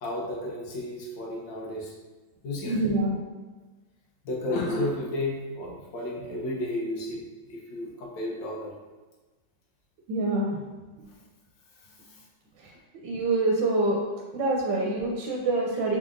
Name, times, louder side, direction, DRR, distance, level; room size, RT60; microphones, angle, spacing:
voice 1, 0.0-1.9 2.4-2.8 4.2-7.2 7.5-8.7, left 1 dB, 85° left, -3 dB, 1.6 m, -32 dB
voice 2, 2.7-3.2 10.1-10.6 12.6-12.7 13.0-14.0 14.3-16.0, right 2 dB, 85° right, -2 dB, 1.4 m, -26 dB
4.7 x 3.7 x 2.5 m, 1.2 s
omnidirectional pair, 1.9 m